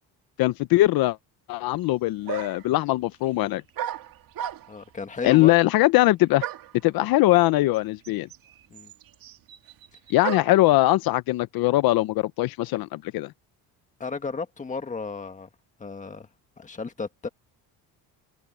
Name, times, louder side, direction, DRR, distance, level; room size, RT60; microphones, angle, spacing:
voice 1, 0.4-1.2 1.5-3.6 5.2-6.5 6.8-8.3 10.1-13.3, left 17 dB, 70° left, 0.7 m, -21 dB
sound 1, 1.8-1.9 2.3-2.7 3.8-4.9 6.4-6.8 7.7-7.8 8.0-10.7, right 11 dB, 65° right, 2.5 m, -34 dB
voice 2, 4.7-5.6 8.7-8.9 14.0-15.5 15.8-16.3 16.6-17.3, left 4 dB, 20° left, 1.7 m, -34 dB
cardioid pair, 145°, 37 cm